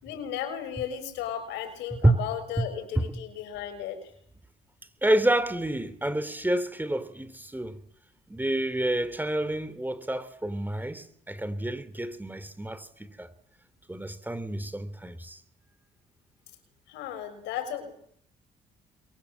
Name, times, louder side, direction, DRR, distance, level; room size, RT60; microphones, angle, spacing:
voice 1, 0.0-4.0 16.9-17.9, left 9 dB, 85° left, 5.9 m, -35 dB
voice 2, 5.0-7.8 8.3-13.3 13.9-15.4, right 1 dB, 10° right, 3.7 m, -28 dB
30.0 x 23.0 x 7.7 m
supercardioid pair, 65°, 18 cm